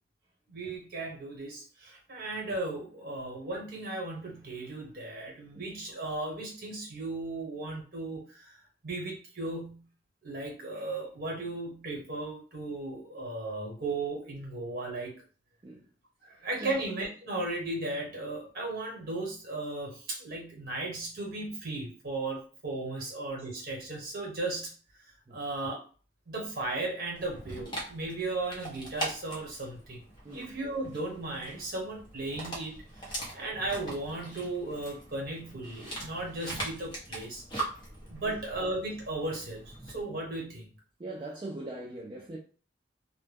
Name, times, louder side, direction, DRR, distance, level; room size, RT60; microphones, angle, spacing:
voice 1, 0.5-8.6 8.8-9.9 10.2-15.2 16.2-24.7 25.3-25.8 26.3-30.0 30.3-37.4 38.1-40.7, right 2 dB, 50° right, 1.0 m, -36 dB
voice 2, 16.2-16.8 25.3-25.4 30.2-30.5 38.2-38.4 41.0-42.4, right 2 dB, 25° right, 0.3 m, -42 dB
Dog, 27.2-40.0, right 1 dB, 25° left, 0.7 m, -41 dB
2.2 x 2.0 x 3.3 m
head